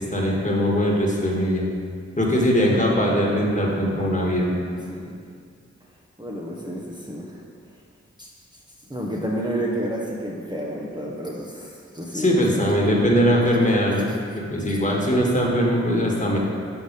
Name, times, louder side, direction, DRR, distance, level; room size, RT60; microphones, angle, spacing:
voice 1, 0.1-1.7 2.2-4.5 12.1-14.1 14.3-16.4, equal, 25° left, -3 dB, 1.5 m, -21 dB
voice 2, 4.5-5.2 6.2-7.4 8.2-8.3 8.9-12.8 13.1-13.4, right 1 dB, 15° right, -3 dB, 0.8 m, -31 dB
6.7 x 4.0 x 5.2 m, 2.2 s
cardioid pair, 40°, 29 cm